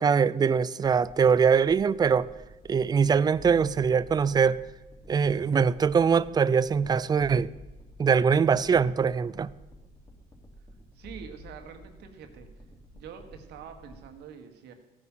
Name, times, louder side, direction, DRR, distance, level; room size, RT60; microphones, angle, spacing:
voice 1, 0.0-2.3 2.7-4.6 5.1-7.5 8.0-9.5, right 6 dB, 25° right, 0.4 m, -22 dB
Guns in the parking lot Bass Loop, 1.7-14.1, equal, 25° left, 3.1 m, -50 dB
voice 2, 10.9-12.5 12.9-14.7, right 7 dB, 80° right, 1.7 m, -45 dB
15.5 x 9.5 x 5.7 m
cardioid pair, 110°, 17 cm